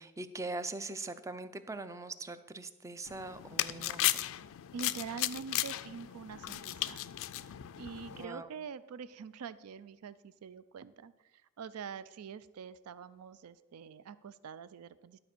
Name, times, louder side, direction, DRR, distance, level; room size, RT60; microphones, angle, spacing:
voice 1, 0.0-4.3 8.1-8.5, right 2 dB, 15° right, 12 dB, 0.4 m, -42 dB
spray bottle, 3.1-8.2, left 15 dB, 65° left, 0.4 m, -36 dB
voice 2, 4.7-7.0 7.8-15.2, right 6 dB, 80° right, 16 dB, 0.4 m, -45 dB
11.5 x 4.4 x 6.7 m, 1.1 s
head